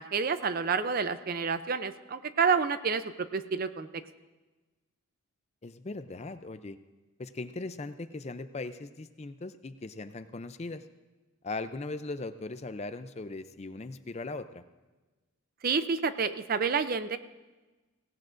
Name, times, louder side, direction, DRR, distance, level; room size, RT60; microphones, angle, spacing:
voice 1, 0.0-3.9 15.6-17.2, right 5 dB, 40° right, 12 dB, 0.5 m, -29 dB
voice 2, 5.6-6.8 7.2-10.8 11.4-14.6, left 3 dB, 30° left, 11 dB, 0.4 m, -39 dB
17.0 x 17.0 x 2.5 m, 1.2 s
head